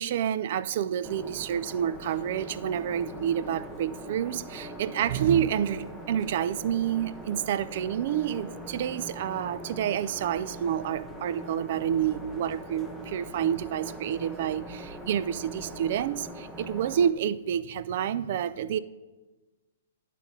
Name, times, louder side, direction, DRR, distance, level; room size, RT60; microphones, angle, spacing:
voice 1, 0.0-18.8, right 9 dB, 50° right, 16 dB, 0.4 m, -29 dB
sound 1, 1.0-17.1, equal, ahead, 0.7 m, -42 dB
10.0 x 4.1 x 7.3 m, 1.2 s
hypercardioid pair, 150°, 0 cm